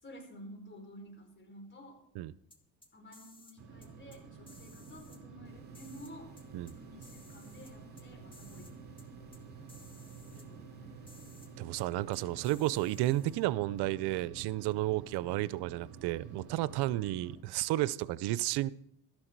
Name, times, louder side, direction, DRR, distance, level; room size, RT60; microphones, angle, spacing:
voice 1, 0.0-2.0 2.9-6.4 6.7-8.8 10.3-11.1, equal, 30° left, 4.6 m, -52 dB
sound 1, 2.5-3.6 3.8-4.2 4.5-5.2 5.7-6.7 7.0-8.0 8.3-8.7 9.0-9.1 9.3-9.4 9.7-10.5 11.1-11.5 11.8-11.9 12.1-13.4, left 2 dB, 15° left, 2.1 m, -58 dB
sound 2, 3.6-17.3, right 6 dB, 50° right, 5.1 m, -51 dB
sound 3, 5.4-13.4, left 1 dB, 25° right, 2.4 m, -60 dB
voice 2, 11.6-18.7, right 16 dB, 80° right, 0.6 m, -32 dB
13.0 x 10.5 x 4.6 m
cardioid pair, 90°, 39 cm